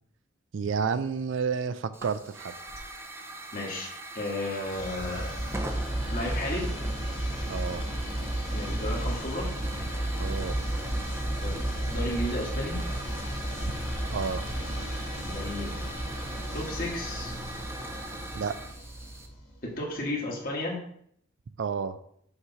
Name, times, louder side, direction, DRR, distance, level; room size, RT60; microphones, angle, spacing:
voice 1, 0.5-2.6 7.5-7.8 10.2-10.6 14.1-14.5 18.3-18.5 21.6-22.0, right 6 dB, 65° right, 12 dB, 0.4 m, -30 dB
Hiss / Fire, 1.9-19.3, right 1 dB, 10° right, 0.5 m, -40 dB
voice 2, 3.5-3.9 4.1-5.6 6.1-6.7 8.5-9.5 11.4-11.6 11.9-12.8 15.3-15.9 16.5-17.3 19.6-20.8, left 1 dB, 45° left, -2 dB, 1.6 m, -33 dB
sound 1, 4.7-19.5, right 1 dB, 65° left, 1.7 m, -33 dB
6.5 x 3.1 x 5.5 m, 0.68 s
head